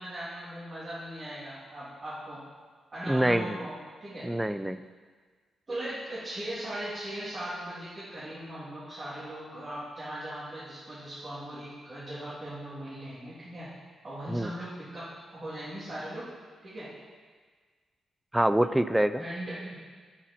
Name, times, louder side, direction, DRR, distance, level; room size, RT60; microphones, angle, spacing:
voice 1, 0.0-2.4 2.9-3.7 4.0-4.3 5.7-13.7 14.0-16.3 16.6-16.9 19.2-19.7, right 1 dB, 35° right, -11 dB, 2.9 m, -39 dB
voice 2, 3.1-3.6 4.2-4.8 14.3-14.5 18.3-19.2, right 1 dB, 5° right, 11 dB, 0.4 m, -25 dB
8.4 x 7.3 x 4.4 m, 1.5 s
cardioid pair, 95°, 0 cm